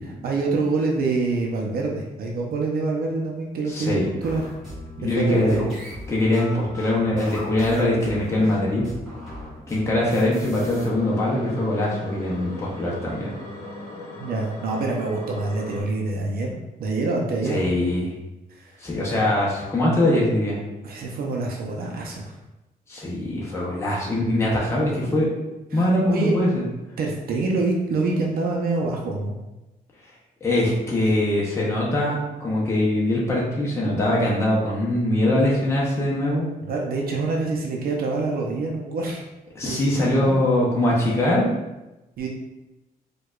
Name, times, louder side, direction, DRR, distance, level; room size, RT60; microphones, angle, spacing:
voice 1, 0.0-4.4 5.0-5.7 14.2-16.5 16.8-17.7 18.5-18.8 20.8-22.3 25.7-26.4 27.0-29.4 36.6-39.2 39.7-39.8 40.2-40.4 42.2-42.3, right 3 dB, 75° right, 0 dB, 0.5 m, -26 dB
voice 2, 3.7-4.1 5.0-5.6 6.1-8.8 9.7-13.3 17.5-18.1 18.8-20.6 22.9-25.3 25.7-26.5 30.4-36.5 39.5-41.5, left 1 dB, 15° left, -5 dB, 0.6 m, -22 dB
sound 1, 4.2-10.9, left 1 dB, ahead, 1.4 m, -39 dB
sound 2, 10.4-15.8, left 2 dB, 65° left, 0.6 m, -38 dB
4.5 x 2.3 x 2.3 m, 1.0 s
wide cardioid pair, 160°, 16 cm